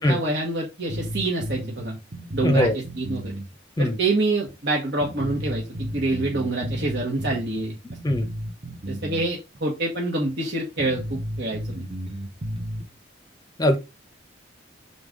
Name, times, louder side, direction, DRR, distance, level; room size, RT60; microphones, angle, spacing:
voice 1, 0.0-1.9 2.3-3.3 3.8-7.7 8.9-11.8, right 2 dB, 60° right, 1.4 m, -26 dB
sound 1, 0.9-3.5 3.8-3.9 4.5-4.6 5.0-9.3 9.5-9.6 10.3-10.4 10.8-12.8, equal, 30° right, 0.9 m, -33 dB
voice 2, 2.4-2.8 3.8-4.0 6.6-6.7 8.0-8.3 13.6-13.8, left 1 dB, 20° left, 0.7 m, -21 dB
6.7 x 4.0 x 3.8 m
head